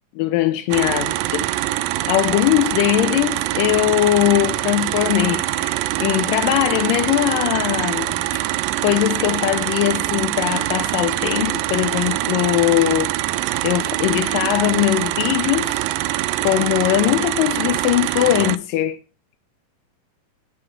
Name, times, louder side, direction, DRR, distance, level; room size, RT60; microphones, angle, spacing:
voice 1, 0.2-8.3 8.8-13.1 13.6-15.8 16.4-19.0, left 15 dB, 80° left, 2.2 m, -20 dB
sound 1, 0.7-18.6, right 15 dB, 85° right, 2.2 m, -24 dB
8.2 x 6.1 x 4.5 m
omnidirectional pair, 4.0 m